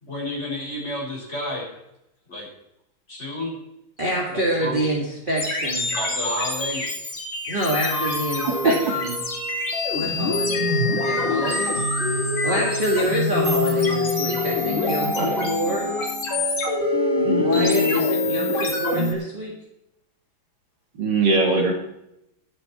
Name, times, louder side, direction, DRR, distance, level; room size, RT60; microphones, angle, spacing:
voice 1, 0.0-1.7 2.3-2.5 3.1-3.5 4.6-4.8 5.9-6.9, left 1 dB, 30° left, -3 dB, 5.6 m, -30 dB
voice 2, 4.0-5.9 7.5-9.1 9.9-11.8 12.1-15.9 17.4-19.5, right 1 dB, 25° right, -3 dB, 2.1 m, -27 dB
sound 1, 5.4-19.1, left 2 dB, 70° left, 4.4 m, -24 dB
voice 3, 15.0-15.5 17.2-17.9 21.0-21.7, right 3 dB, 60° right, 1 dB, 2.8 m, -22 dB
21.5 x 8.2 x 4.4 m, 0.84 s
omnidirectional pair, 2.2 m